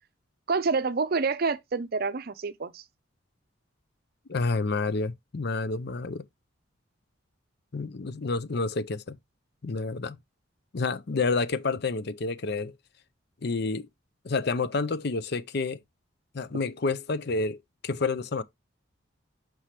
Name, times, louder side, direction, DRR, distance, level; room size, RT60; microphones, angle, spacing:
voice 1, 0.5-2.8 16.5-16.6, right 4 dB, 50° right, 0.6 m, -28 dB
voice 2, 4.3-6.2 7.7-9.2 9.6-10.2 10.7-12.7 13.4-13.9 14.2-15.8 16.3-17.6 17.8-18.4, left 3 dB, 55° left, 0.6 m, -29 dB
6.1 x 5.8 x 3.2 m
head